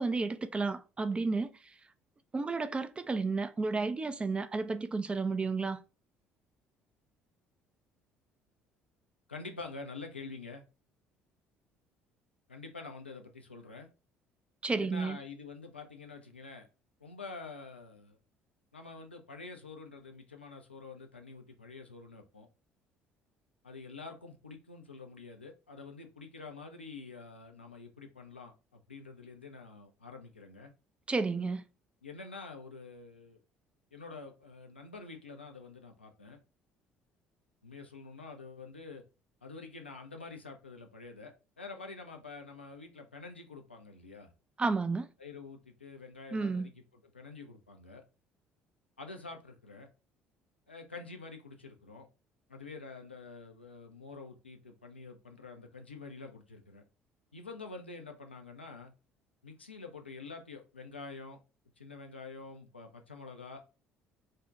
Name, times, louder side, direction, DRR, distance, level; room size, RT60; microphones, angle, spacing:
voice 1, 0.0-1.5 2.3-5.8 14.6-15.2 31.1-31.6 44.6-45.1 46.3-46.7, right 3 dB, 20° right, 0.3 m, -32 dB
voice 2, 9.3-10.6 12.5-13.9 14.7-16.7 17.0-18.2 18.7-22.5 23.6-30.7 32.0-33.4 33.9-36.4 37.6-39.0 39.4-44.3 45.2-48.0 49.0-49.9 50.7-52.1 52.5-56.8 57.3-58.9 59.4-61.4 61.8-63.6, left 4 dB, 85° left, 0.4 m, -47 dB
2.5 x 2.1 x 3.5 m
figure-of-eight pair, 55°, 6 cm